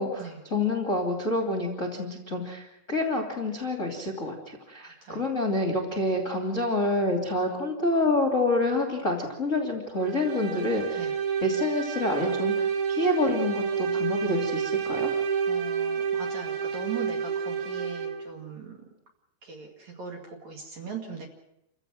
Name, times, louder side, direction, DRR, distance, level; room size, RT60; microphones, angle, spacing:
voice 1, 0.5-11.1 11.4-15.1, left 2 dB, 25° left, 1 dB, 2.1 m, -27 dB
voice 2, 4.8-5.2 11.0-11.1 15.5-18.8 19.4-21.3, right 5 dB, 45° right, 2 dB, 2.9 m, -39 dB
sound 1, 9.9-18.3, right 6 dB, 80° right, 4.4 m, -29 dB
28.5 x 15.5 x 7.7 m, 0.85 s
omnidirectional pair, 5.2 m